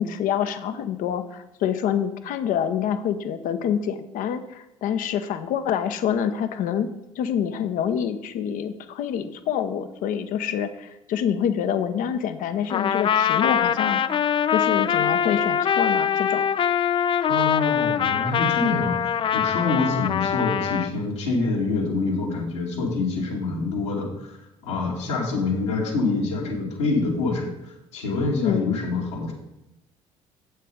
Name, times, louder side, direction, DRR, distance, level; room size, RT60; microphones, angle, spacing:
voice 1, 0.0-6.9 7.2-14.0 14.5-16.4 28.4-28.8, left 8 dB, 55° left, 10 dB, 0.9 m, -26 dB
Trumpet, 12.7-20.9, left 8 dB, 30° left, 0.4 m, -23 dB
voice 2, 17.3-24.4 24.6-29.3, left 3 dB, 75° left, -2 dB, 2.1 m, -26 dB
7.9 x 7.9 x 4.9 m, 0.91 s
figure-of-eight pair, 55°, 16 cm